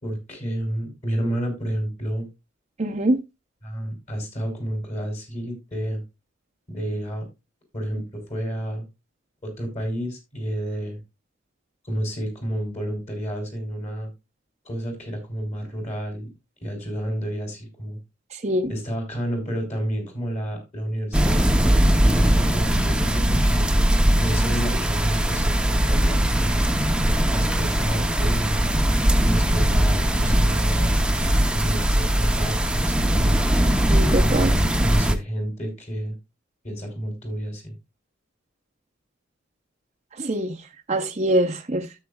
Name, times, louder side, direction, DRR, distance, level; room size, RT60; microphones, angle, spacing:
voice 1, 0.0-2.3 3.6-6.0 6.7-7.2 7.7-8.8 9.4-11.0 11.8-14.1 14.6-16.3 16.6-18.0 18.7-23.7 24.2-26.6 27.3-28.8 29.2-33.4 34.1-34.5 34.8-36.1 36.6-37.7, equal, 35° left, 3.5 m, -30 dB
voice 2, 2.8-3.2 18.3-18.7 33.9-34.5 40.2-40.6 40.9-41.9, right 1 dB, 35° right, 0.7 m, -23 dB
sound 1, 21.1-35.1, right 1 dB, 5° right, 0.7 m, -20 dB
13.0 x 7.5 x 2.3 m
head